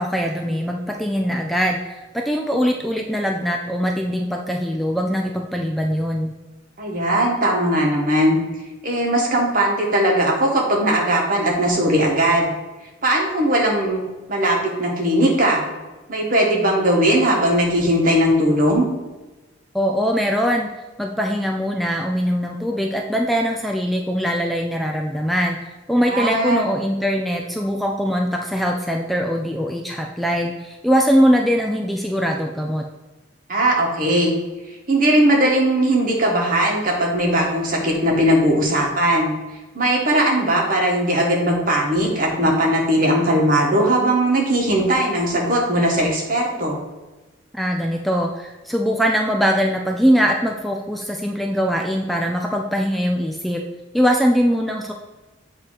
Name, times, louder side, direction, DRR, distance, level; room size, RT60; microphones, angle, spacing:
voice 1, 0.0-6.3 19.7-20.7 21.0-32.8 47.5-53.6 53.9-54.9, equal, ahead, 1 dB, 0.3 m, -21 dB
voice 2, 6.8-8.4 8.8-12.5 13.0-14.0 14.3-15.7 16.1-18.9 26.0-26.6 33.5-34.3 34.9-39.3 39.7-46.8, right 1 dB, 50° right, -1 dB, 1.4 m, -19 dB
8.0 x 2.8 x 4.8 m, 1.1 s
head